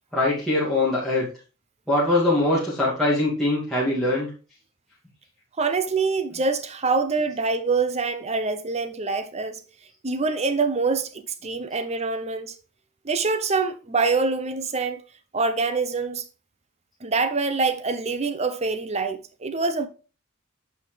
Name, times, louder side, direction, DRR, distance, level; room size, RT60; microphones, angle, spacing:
voice 1, 0.1-1.3 1.9-4.3, left 2 dB, ahead, 2.4 m, -22 dB
voice 2, 5.6-9.6 10.0-12.5 13.0-15.0 15.3-16.2 17.0-19.9, right 4 dB, 30° right, 0.7 m, -25 dB
8.9 x 5.7 x 3.3 m
head